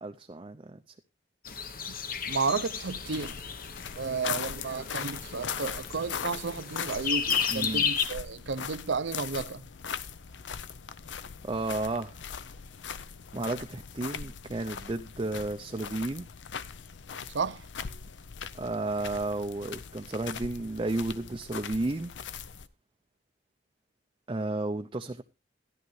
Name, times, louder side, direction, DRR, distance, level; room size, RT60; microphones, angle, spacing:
voice 1, 0.0-0.8 7.5-7.9 11.4-12.2 13.3-16.3 18.6-22.1 24.3-25.2, right 2 dB, 25° right, 0.5 m, -32 dB
sound 1, 1.4-8.0, left 7 dB, 50° left, 0.9 m, -33 dB
voice 2, 2.3-3.3 4.0-9.7 17.3-17.6, right 4 dB, 70° right, 0.6 m, -32 dB
sound 2, 2.9-22.7, left 7 dB, 70° left, 0.6 m, -40 dB
14.0 x 11.0 x 3.2 m
head